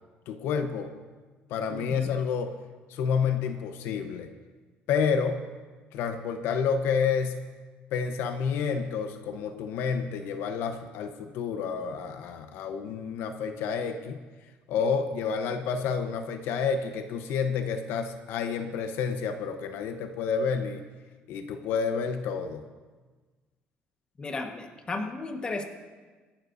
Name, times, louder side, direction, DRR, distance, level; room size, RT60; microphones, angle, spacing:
voice 1, 0.3-0.9 1.5-2.5 2.9-4.3 4.9-5.4 5.9-7.5 7.9-14.2 14.7-20.8 21.3-22.6, left 6 dB, 80° left, 7 dB, 0.9 m, -29 dB
voice 2, 1.7-2.1 24.2-25.6, left 3 dB, 25° left, 3 dB, 1.3 m, -34 dB
24.5 x 11.5 x 2.7 m, 1.4 s
cardioid pair, 150°, 4 cm